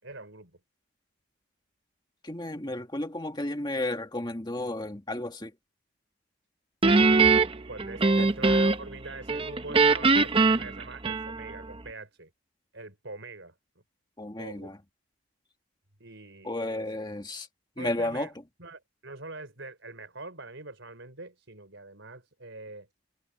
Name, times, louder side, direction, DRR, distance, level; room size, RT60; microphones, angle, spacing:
voice 1, 0.0-0.5 7.7-12.3 12.7-13.5 14.4-14.7 16.0-16.9 17.8-18.3 18.6-22.9, right 3 dB, 60° right, 4.9 m, -44 dB
voice 2, 2.2-5.5 8.2-8.3 14.2-14.8 16.4-17.5 17.8-18.3, left 1 dB, 20° left, 1.8 m, -33 dB
Guitar, 6.8-9.0 9.3-11.6, right 3 dB, 25° right, 0.7 m, -22 dB
head